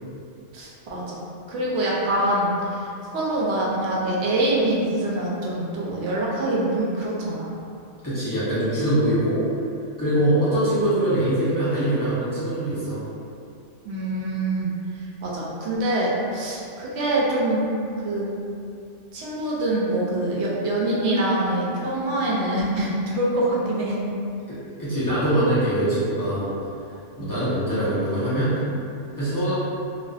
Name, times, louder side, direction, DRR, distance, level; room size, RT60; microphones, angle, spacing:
voice 1, 0.5-1.2 1.5-2.9 3.1-7.5 10.2-10.3 13.8-14.7 15.2-17.7 18.0-18.3 19.1-24.0 27.2-27.3, right 1 dB, 70° right, -5 dB, 0.8 m, -24 dB
voice 2, 8.0-9.4 10.0-13.0 24.5-26.5 27.2-28.5 29.2-29.5, right 1 dB, 25° left, -13 dB, 0.4 m, -23 dB
2.5 x 2.3 x 2.3 m, 2.6 s
omnidirectional pair, 1.3 m